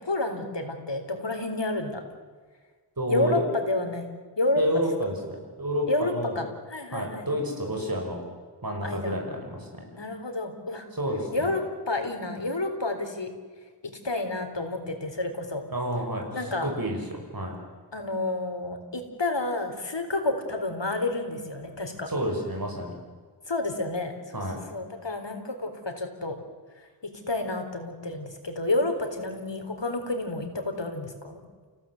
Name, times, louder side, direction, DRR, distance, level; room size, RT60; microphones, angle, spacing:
voice 1, 0.0-2.0 3.1-4.6 5.9-7.3 8.8-9.2 9.9-10.9 11.3-13.3 13.8-15.7 16.3-16.7 17.9-22.1 23.5-24.4 24.7-26.4 26.8-26.9 27.3-31.4, left 2 dB, 70° left, 5 dB, 4.0 m, -30 dB
voice 2, 3.0-3.4 4.6-6.4 6.9-8.2 8.6-9.8 10.9-11.5 15.7-17.0 17.3-17.6 22.1-22.9 24.3-24.6, equal, 50° right, 1 dB, 5.9 m, -29 dB
29.5 x 17.0 x 7.9 m, 1.5 s
wide cardioid pair, 45°, 44 cm